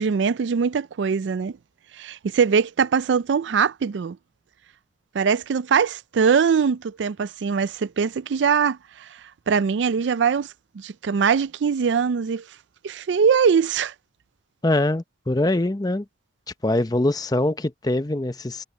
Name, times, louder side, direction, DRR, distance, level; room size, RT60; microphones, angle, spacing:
voice 1, 0.0-1.5 2.0-4.2 5.1-9.1 9.5-10.5 10.8-12.4 12.8-13.9, right 6 dB, 75° right, 0.4 m, -22 dB
voice 2, 14.6-16.0 16.6-18.6, left 1 dB, 20° left, 0.7 m, -23 dB
head